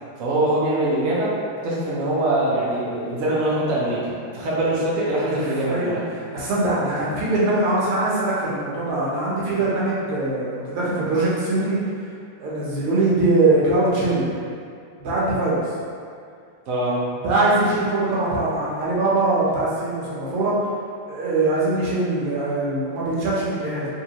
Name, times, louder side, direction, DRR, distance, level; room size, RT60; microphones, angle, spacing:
voice 1, 0.2-1.3 1.6-4.1 4.3-6.0 16.7-17.0, right 1 dB, 60° right, -7 dB, 0.8 m, -23 dB
voice 2, 5.3-6.0 6.3-11.8 12.4-14.3 15.0-15.6 17.2-20.6 21.1-23.9, right 2 dB, 85° right, -7 dB, 1.9 m, -22 dB
4.0 x 3.0 x 2.9 m, 2.3 s
omnidirectional pair, 2.4 m